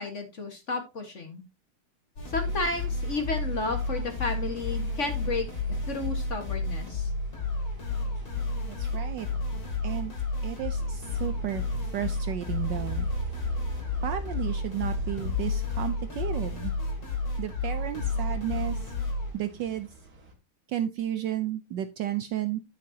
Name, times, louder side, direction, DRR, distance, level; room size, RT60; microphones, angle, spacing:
voice 1, 0.0-1.4 2.3-5.5 5.9-7.1, left 2 dB, 35° left, 5 dB, 1.6 m, -32 dB
sound 1, 2.2-19.3, left 3 dB, 70° left, 4.1 m, -31 dB
sound 2, 2.3-20.3, right 2 dB, 45° right, 2.3 m, -45 dB
voice 2, 8.7-9.3 9.8-10.1 10.4-13.1 14.0-16.7 17.4-18.9 19.3-19.9 20.7-22.6, right 11 dB, 70° right, 11 dB, 1.1 m, -33 dB
9.5 x 9.2 x 2.8 m, 0.24 s
omnidirectional pair, 2.4 m